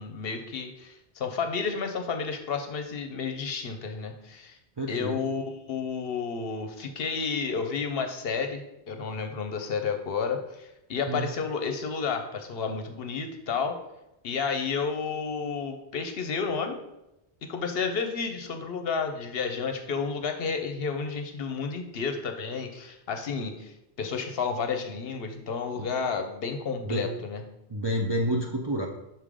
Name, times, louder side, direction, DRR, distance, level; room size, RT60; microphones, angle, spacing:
voice 1, 0.0-4.6 4.9-13.8 14.2-16.8 17.4-23.7 24.0-27.4, left 5 dB, 65° left, 6 dB, 0.9 m, -31 dB
voice 2, 4.8-5.2 11.1-11.3 25.8-25.9 26.8-27.1 27.7-28.9, right 1 dB, 35° right, -1 dB, 0.4 m, -29 dB
5.9 x 3.7 x 4.9 m, 0.90 s
omnidirectional pair, 1.1 m